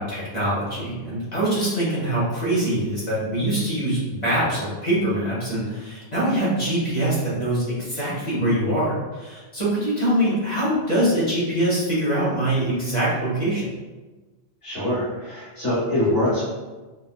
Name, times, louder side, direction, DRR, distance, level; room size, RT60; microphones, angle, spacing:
voice 1, 0.0-13.8, right 1 dB, 40° left, -8 dB, 1.0 m, -23 dB
voice 2, 14.6-16.5, left 1 dB, 55° left, -11 dB, 1.5 m, -24 dB
3.6 x 2.3 x 2.2 m, 1.2 s
omnidirectional pair, 1.1 m